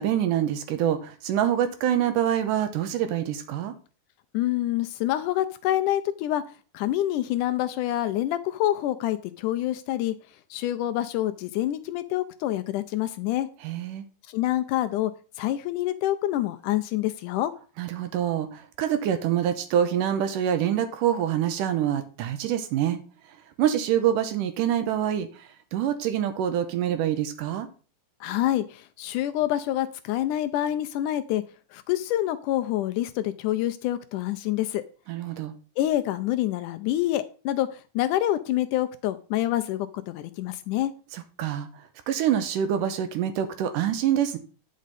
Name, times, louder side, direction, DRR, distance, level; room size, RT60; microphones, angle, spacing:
voice 1, 0.0-3.7 13.6-14.0 17.8-23.0 23.6-27.7 35.1-35.5 41.1-41.7 42.1-44.4, right 10 dB, 80° right, 9 dB, 2.4 m, -26 dB
voice 2, 4.3-6.4 6.7-10.1 10.5-13.5 14.3-15.1 15.4-17.5 28.2-31.4 31.7-34.8 35.8-40.9, left 13 dB, 80° left, 10 dB, 1.9 m, -27 dB
9.4 x 6.3 x 4.1 m, 0.36 s
omnidirectional pair, 3.9 m